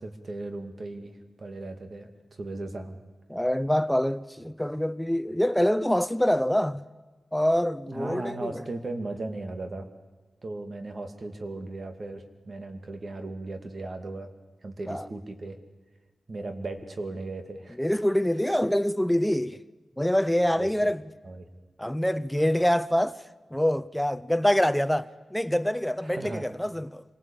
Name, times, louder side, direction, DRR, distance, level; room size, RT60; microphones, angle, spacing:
voice 1, 0.0-3.0 7.9-9.9 10.4-14.3 14.6-15.6 16.3-17.8 20.6-20.9 21.2-21.5 26.0-26.5, right 2 dB, 55° right, 2.5 m, -37 dB
voice 2, 3.3-6.8 7.3-8.6 14.9-15.1 17.8-19.6 20.0-21.0 21.8-23.3 23.5-27.0, equal, 5° left, 0.7 m, -25 dB
25.5 x 18.5 x 8.9 m
cardioid pair, 55°, 0 cm